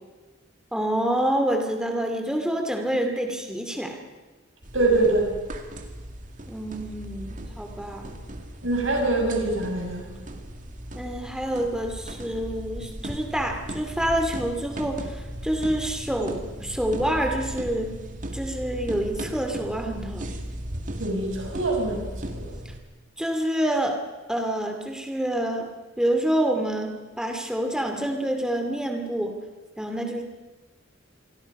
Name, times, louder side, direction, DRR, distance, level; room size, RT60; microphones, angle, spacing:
voice 1, 0.7-4.0 6.5-8.1 10.9-17.9 18.3-20.4 23.2-24.0 24.3-25.7 26.0-29.4 29.8-30.2, right 1 dB, 5° right, 4 dB, 2.4 m, -27 dB
sound 1, 4.6-22.8, right 1 dB, 40° right, 2.1 m, -37 dB
voice 2, 4.7-5.3 8.6-10.1 21.0-22.0 22.3-22.5, right 2 dB, 75° right, 1 dB, 6.3 m, -24 dB
27.5 x 22.5 x 5.4 m, 1.2 s
head